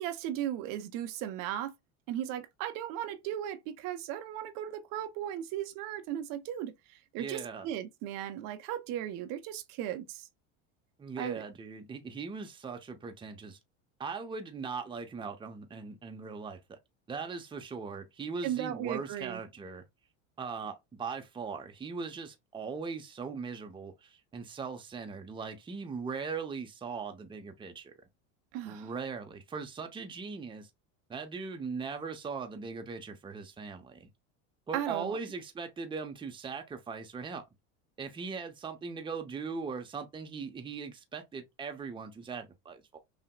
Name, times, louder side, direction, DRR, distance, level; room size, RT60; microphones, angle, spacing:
voice 1, 0.0-1.7 2.1-10.3 11.2-11.4 18.4-19.4 28.5-28.9 34.7-35.2, right 11 dB, 55° right, 0.7 m, -36 dB
voice 2, 7.2-7.7 11.0-13.6 14.0-16.8 17.1-19.8 20.4-27.9 28.7-30.7 31.1-34.1 34.7-37.5 38.0-43.0, right 5 dB, 15° right, 0.7 m, -39 dB
5.7 x 2.1 x 2.2 m
supercardioid pair, 105°, 38 cm